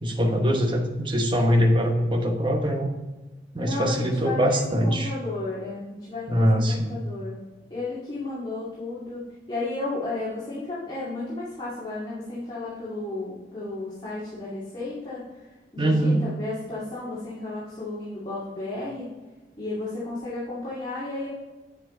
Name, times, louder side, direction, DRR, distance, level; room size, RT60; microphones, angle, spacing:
voice 1, 0.0-2.9 3.5-5.1 6.3-6.9 15.8-16.3, equal, 25° right, 2 dB, 1.0 m, -22 dB
voice 2, 3.6-7.4 7.7-9.2 9.5-19.1 19.6-21.3, left 2 dB, 25° left, -9 dB, 2.2 m, -33 dB
8.8 x 7.6 x 3.8 m, 1.2 s
head